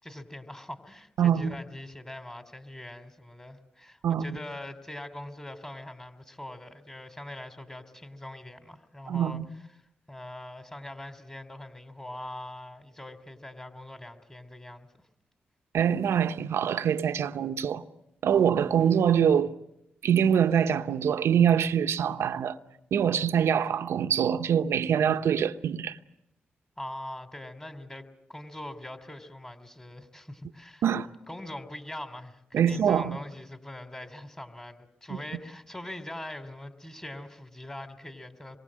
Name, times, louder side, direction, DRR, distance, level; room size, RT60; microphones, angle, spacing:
voice 1, 0.0-9.4 9.7-14.9 26.8-30.8 31.3-38.6, left 1 dB, 15° left, 3.0 m, -42 dB
voice 2, 1.2-1.5 4.0-4.2 9.1-9.5 15.7-17.8 18.2-19.5 20.0-22.6 22.9-26.0 30.8-31.1 32.5-33.2 35.1-35.2, right 8 dB, 75° right, 0.9 m, -24 dB
26.5 x 23.0 x 7.6 m
supercardioid pair, 45°, 4 cm